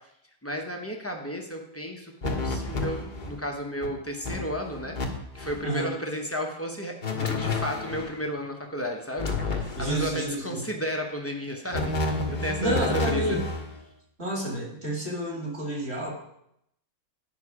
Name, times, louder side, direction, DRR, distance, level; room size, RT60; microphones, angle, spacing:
voice 1, 0.4-5.0 5.3-13.4, equal, 10° left, 1 dB, 0.7 m, -33 dB
sound 1, 2.2-3.4 3.8-3.9 4.2-5.1 5.3-5.7 7.0-8.2 9.2-10.2 11.7-13.7, left 3 dB, 35° left, 1.0 m, -30 dB
voice 2, 9.8-10.7 12.4-13.4 14.2-16.1, right 1 dB, 45° right, -2 dB, 2.4 m, -30 dB
9.0 x 5.7 x 4.8 m, 0.78 s
omnidirectional pair, 1.6 m